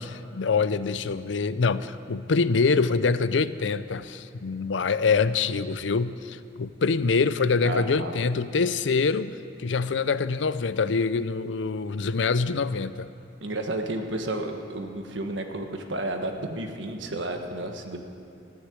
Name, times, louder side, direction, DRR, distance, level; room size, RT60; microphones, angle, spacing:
voice 1, 0.0-13.1, left 4 dB, 85° left, 14 dB, 0.5 m, -25 dB
voice 2, 7.6-8.2 13.4-18.0, right 1 dB, 85° right, 4 dB, 1.5 m, -32 dB
14.5 x 9.8 x 9.8 m, 2.6 s
head